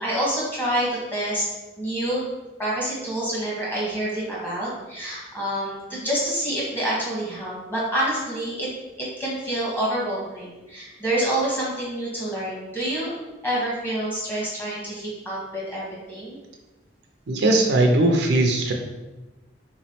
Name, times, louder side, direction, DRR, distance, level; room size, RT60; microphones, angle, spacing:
voice 1, 0.0-1.5 1.8-2.2 2.6-8.7 9.0-13.1 13.4-16.4, right 1 dB, 10° left, -6 dB, 1.1 m, -27 dB
voice 2, 17.3-18.7, right 1 dB, 65° right, 2 dB, 0.4 m, -19 dB
3.5 x 3.0 x 2.8 m, 1.1 s
head